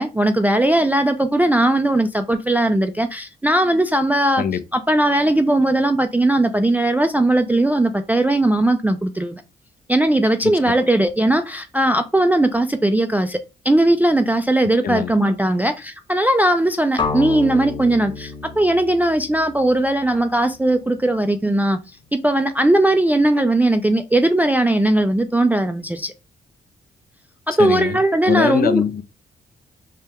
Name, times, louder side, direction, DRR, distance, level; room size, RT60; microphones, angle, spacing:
voice 1, 0.0-4.4 4.7-9.4 9.9-13.4 13.7-21.8 22.2-26.1 27.5-28.8, right 1 dB, 10° right, 0.3 m, -18 dB
sound 1, 17.0-20.9, left 4 dB, 25° left, 0.8 m, -30 dB
voice 2, 27.6-28.0 28.3-29.0, left 8 dB, 50° left, 0.5 m, -22 dB
3.5 x 2.2 x 2.9 m
supercardioid pair, 50°, 20 cm